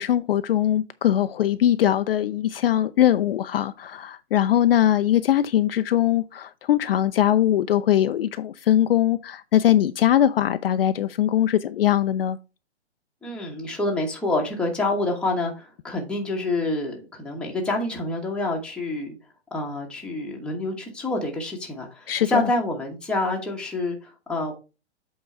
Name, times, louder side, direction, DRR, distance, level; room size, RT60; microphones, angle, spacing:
voice 1, 0.0-12.4 22.1-22.5, left 11 dB, 55° left, 0.5 m, -21 dB
voice 2, 13.2-19.1 19.5-24.5, left 2 dB, 5° left, 1.2 m, -27 dB
7.9 x 3.8 x 4.4 m
hypercardioid pair, 150°, 34 cm